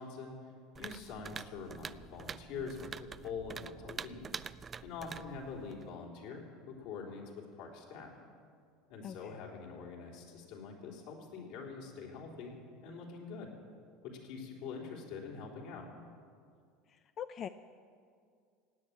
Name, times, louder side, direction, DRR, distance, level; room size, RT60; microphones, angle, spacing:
voice 1, 0.0-4.3 4.8-8.1 8.9-12.5 12.8-13.5 14.0-15.9, left 5 dB, 70° left, -1 dB, 3.6 m, -45 dB
sound 1, 0.7-5.9, right 6 dB, 30° right, 0.4 m, -46 dB
voice 2, 16.9-17.5, left 9 dB, 45° left, 9 dB, 0.5 m, -42 dB
17.0 x 9.1 x 8.6 m, 2.2 s
hypercardioid pair, 90°, 0 cm